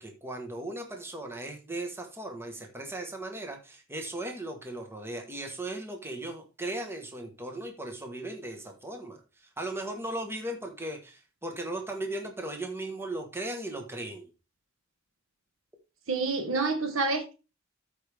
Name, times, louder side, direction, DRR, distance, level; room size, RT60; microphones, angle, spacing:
voice 1, 0.0-14.3, right 1 dB, 10° right, 1.2 m, -37 dB
voice 2, 16.1-17.3, right 3 dB, 75° right, 1.0 m, -28 dB
13.0 x 4.9 x 3.4 m
head